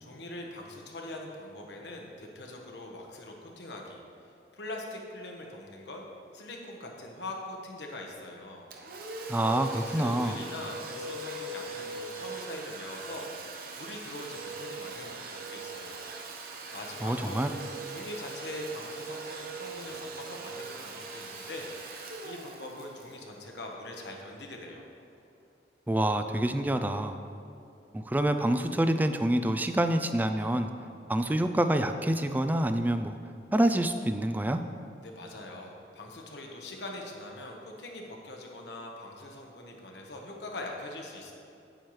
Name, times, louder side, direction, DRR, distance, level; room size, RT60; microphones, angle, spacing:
voice 1, 0.0-6.0 6.3-8.7 9.4-16.0 16.7-17.5 17.9-21.7 22.2-24.8 35.0-41.3, left 1 dB, 75° left, 1 dB, 1.2 m, -42 dB
Domestic sounds home sounds, 8.7-24.2, right 3 dB, 55° right, 0.8 m, -41 dB
voice 2, 9.3-10.4 17.0-17.5 25.9-27.2 27.9-30.7 31.1-33.2 33.5-34.6, right 1 dB, 10° right, 8 dB, 0.3 m, -27 dB
8.9 x 8.8 x 3.2 m, 2.7 s
head